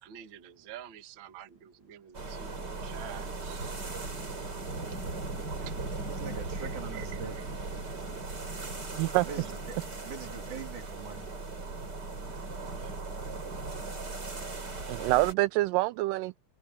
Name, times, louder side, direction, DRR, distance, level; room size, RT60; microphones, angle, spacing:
voice 1, 0.0-3.7 5.7-5.8 6.6-7.4 12.7-13.1, right 11 dB, 45° right, 1.9 m, -48 dB
sound 1, 2.1-15.3, right 3 dB, 30° right, 4.4 m, -38 dB
voice 2, 6.1-7.4 9.3-9.8 10.0-11.3 15.1-15.2, right 6 dB, 65° right, 4.4 m, -42 dB
voice 3, 14.9-16.4, right 20 dB, 85° right, 2.2 m, -26 dB
omnidirectional pair, 3.9 m